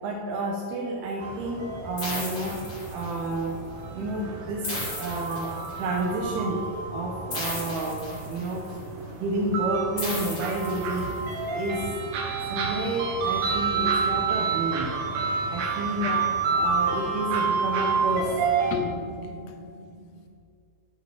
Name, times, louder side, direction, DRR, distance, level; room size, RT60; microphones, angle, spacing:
voice 1, 0.0-2.5 2.9-3.6 3.9-4.7 5.0-6.6 6.9-8.7 9.0-11.1 11.5-11.9 12.5-15.0 15.5-16.1 16.5-18.3, right 2 dB, 80° right, 0 dB, 2.4 m, -30 dB
sound 1, 1.2-18.8, right 5 dB, 60° right, 2.5 m, -29 dB
sound 2, 2.0-3.3 4.6-6.0 7.3-8.7 10.0-11.3, left 1 dB, 30° left, 2.5 m, -35 dB
voice 2, 16.0-16.3 18.7-20.3, left 6 dB, 75° left, 6 dB, 2.6 m, -35 dB
14.0 x 5.5 x 6.0 m, 2.4 s
omnidirectional pair, 5.5 m